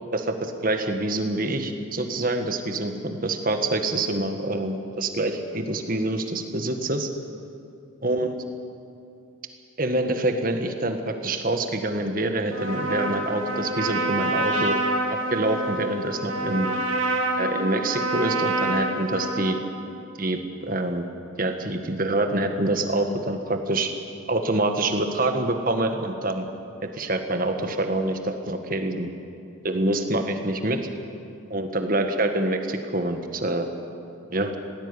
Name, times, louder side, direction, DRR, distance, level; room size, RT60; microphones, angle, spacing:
voice 1, 0.1-7.1 8.0-8.3 9.8-14.8 15.3-16.7 17.4-19.6 20.2-21.1 21.4-23.9 24.3-26.5 26.9-29.1 29.6-30.8 31.5-33.7 34.3-34.5, right 2 dB, 40° right, 6 dB, 1.7 m, -26 dB
Trumpet, 12.5-19.7, right 2 dB, 75° right, 3.2 m, -27 dB
18.5 x 16.0 x 9.9 m, 2.6 s
head